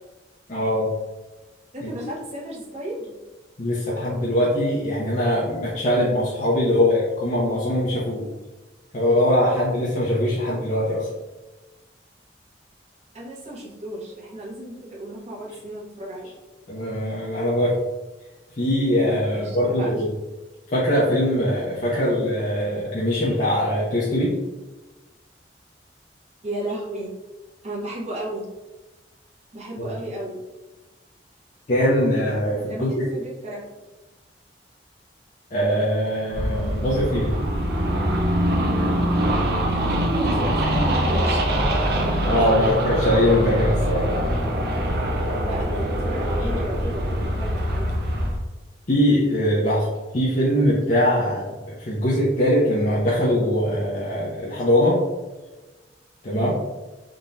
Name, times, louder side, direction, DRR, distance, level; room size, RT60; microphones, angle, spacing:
voice 1, 0.5-0.9 1.8-1.9 3.6-8.2 8.9-11.1 16.7-17.8 18.6-20.1 20.7-24.3 29.8-29.9 31.7-33.0 35.5-37.4 42.3-44.0 48.9-49.9 50.1-55.0 56.2-56.5, equal, 45° left, -7 dB, 0.7 m, -22 dB
voice 2, 1.7-3.2 13.1-16.3 19.3-20.1 26.4-27.1 27.6-28.5 29.5-30.4 32.5-33.6 39.7-41.5 45.3-47.9 56.3-56.6, right 1 dB, 40° right, -5 dB, 1.0 m, -34 dB
sound 1, 36.3-48.4, equal, 60° right, 0.6 m, -23 dB
3.7 x 2.9 x 2.6 m, 1.2 s
head